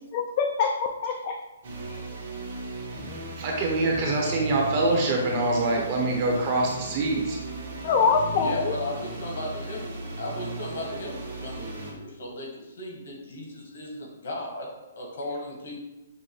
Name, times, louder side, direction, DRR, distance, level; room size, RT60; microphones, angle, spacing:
voice 1, 0.1-1.3 1.9-2.0 7.8-8.7, left 5 dB, 40° left, 2 dB, 0.4 m, -24 dB
sound 1, 1.6-11.9, right 2 dB, 60° right, 1.2 m, -37 dB
voice 2, 3.4-7.4, right 2 dB, 40° right, 0 dB, 0.9 m, -25 dB
voice 3, 8.4-9.9 10.2-14.7 14.9-15.8, left 1 dB, 70° left, -1 dB, 1.5 m, -36 dB
6.0 x 2.2 x 3.1 m, 1.0 s
hypercardioid pair, 150°, 0 cm